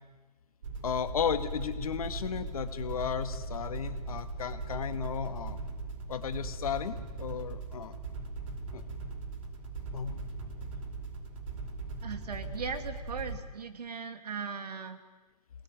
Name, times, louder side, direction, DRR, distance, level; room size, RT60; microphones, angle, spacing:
sound 1, 0.6-13.4, right 3 dB, 50° right, 5.0 m, -39 dB
voice 1, 0.8-5.6 6.1-8.0 8.7-8.8 9.9-10.3, left 7 dB, 60° left, 10 dB, 2.0 m, -34 dB
voice 2, 12.0-15.0, right 5 dB, 70° right, 8 dB, 2.7 m, -38 dB
24.0 x 19.5 x 9.4 m, 1.3 s
hypercardioid pair, 140°, 21 cm